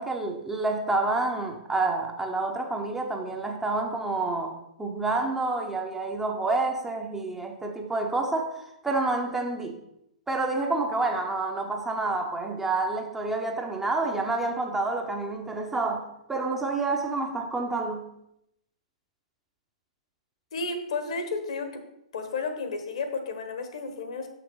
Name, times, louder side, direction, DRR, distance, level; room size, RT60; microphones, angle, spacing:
voice 1, 0.0-9.8 10.3-18.1, right 3 dB, 10° right, 3 dB, 0.9 m, -28 dB
voice 2, 20.5-21.8 22.1-24.3, left 4 dB, 60° left, 7 dB, 1.3 m, -32 dB
6.8 x 6.0 x 4.7 m, 0.80 s
figure-of-eight pair, 110°, 4 cm